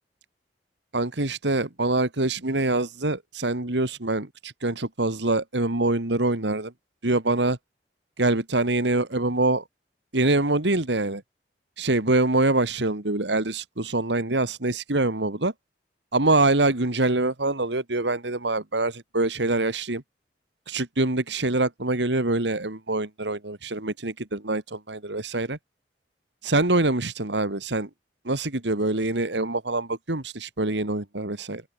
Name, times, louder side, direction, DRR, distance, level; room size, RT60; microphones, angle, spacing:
voice 1, 0.9-6.7 7.0-7.6 8.2-9.6 10.1-11.2 11.8-15.5 16.1-20.0 20.7-25.6 26.4-27.9 28.3-31.6, right 2 dB, 80° right, 2.3 m, -25 dB
open air
head